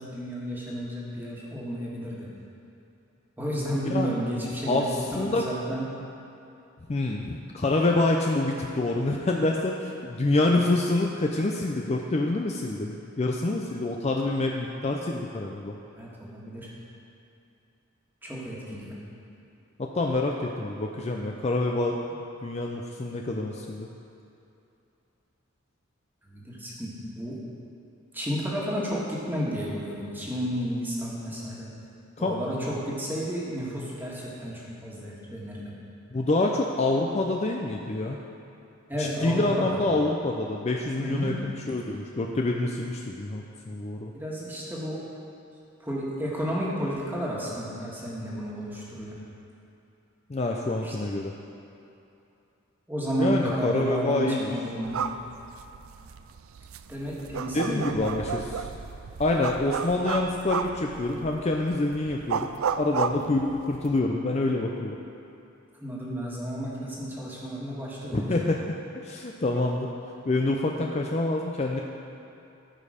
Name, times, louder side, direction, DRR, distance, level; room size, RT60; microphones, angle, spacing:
voice 1, 0.0-2.3 3.4-5.9 16.0-16.7 18.2-19.0 26.2-27.4 28.1-31.7 32.2-35.7 38.9-39.8 41.0-41.4 44.1-45.0 45.8-49.2 50.8-51.0 52.9-55.0 56.9-58.1 65.8-68.4, equal, 10° right, -6 dB, 1.7 m, -32 dB
voice 2, 6.9-15.7 19.8-23.9 32.2-32.4 36.1-38.2 39.0-44.1 50.3-51.3 53.2-54.5 57.5-58.6 59.2-62.5 62.8-65.0 68.1-68.6 69.0-69.9 70.3-71.8, left 2 dB, 30° left, 1 dB, 0.5 m, -27 dB
sound 1, 54.8-64.0, right 6 dB, 85° right, 0.4 m, -33 dB
14.0 x 5.3 x 5.0 m, 2.8 s
head